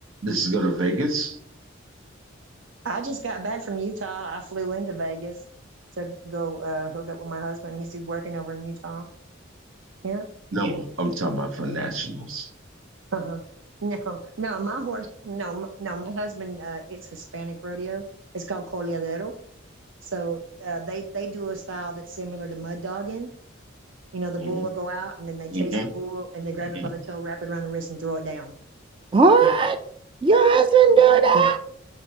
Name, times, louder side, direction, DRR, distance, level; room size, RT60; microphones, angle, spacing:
voice 1, 0.2-1.4 10.5-12.5 24.4-24.6 25.5-25.9 26.7-26.9, right 2 dB, 85° right, 5 dB, 1.1 m, -27 dB
voice 2, 2.8-5.4 6.0-9.1 10.0-10.3 13.1-13.4 13.8-18.0 18.3-19.3 20.0-23.3 24.1-28.5 29.4-29.5 31.3-31.5, right 3 dB, 65° right, 4 dB, 0.6 m, -32 dB
voice 3, 29.1-29.8 30.2-31.6, right 5 dB, 25° right, 9 dB, 0.4 m, -16 dB
7.5 x 3.0 x 5.3 m, 0.64 s
head